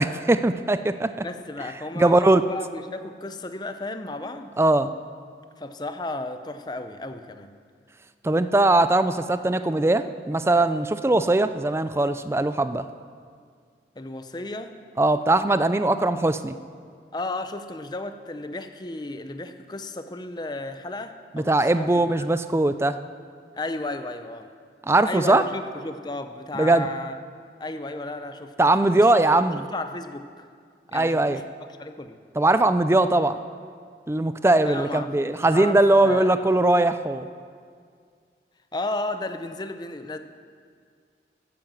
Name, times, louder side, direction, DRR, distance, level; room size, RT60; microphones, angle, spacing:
voice 1, 0.0-1.3 2.0-2.4 4.6-4.9 8.2-12.9 15.0-16.6 21.3-23.0 24.9-25.4 26.5-26.9 28.6-29.6 30.9-31.4 32.4-33.4 34.1-37.3, right 2 dB, 15° right, 12 dB, 0.4 m, -20 dB
voice 2, 1.2-4.5 5.6-7.5 14.0-14.7 17.1-21.9 22.2-22.4 23.6-24.5 25.1-27.2 27.6-28.5 28.9-30.5 30.9-31.4 31.8-32.2 34.6-35.8 36.0-36.6 38.7-40.2, left 2 dB, 25° left, 9 dB, 0.6 m, -34 dB
13.5 x 8.8 x 7.5 m, 2.1 s
head